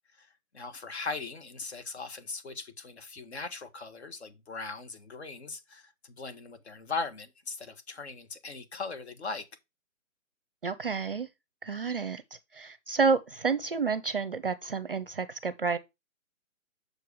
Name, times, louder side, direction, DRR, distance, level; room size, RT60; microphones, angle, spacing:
voice 1, 0.5-9.5, left 4 dB, 50° left, 1.5 m, -39 dB
voice 2, 10.6-11.3 11.6-12.2 12.5-15.8, right 5 dB, 45° right, 0.6 m, -29 dB
6.7 x 4.7 x 4.7 m
hypercardioid pair, 170°, 41 cm